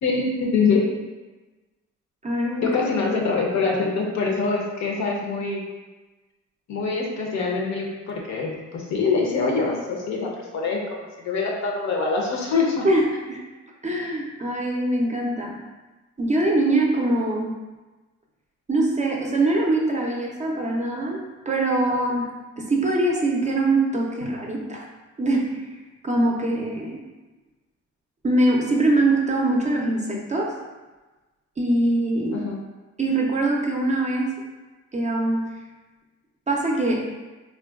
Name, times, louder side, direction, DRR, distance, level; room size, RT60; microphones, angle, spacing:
voice 1, 0.0-0.9 2.6-5.7 6.7-11.0 11.2-12.9 32.3-32.6, left 4 dB, 65° left, -1 dB, 0.7 m, -24 dB
voice 2, 2.2-2.7 12.8-13.4 13.8-15.6 16.2-17.5 18.7-22.3 22.6-24.9 25.2-25.7 26.0-27.0 28.2-30.6 31.6-32.4 33.0-34.4 34.9-35.5 36.5-37.0, right 2 dB, 25° right, -1 dB, 0.4 m, -23 dB
3.7 x 2.1 x 2.3 m, 1.2 s
cardioid pair, 90°, 30 cm